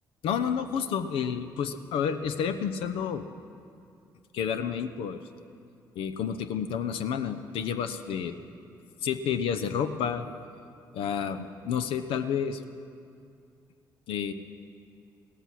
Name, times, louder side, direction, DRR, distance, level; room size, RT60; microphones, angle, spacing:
voice 1, 0.2-3.2 4.3-5.2 6.0-8.4 9.0-10.3 10.9-12.6 14.1-14.3, left 7 dB, 60° left, 10 dB, 0.7 m, -30 dB
17.0 x 13.5 x 6.1 m, 2.5 s
figure-of-eight pair, 45°, 10 cm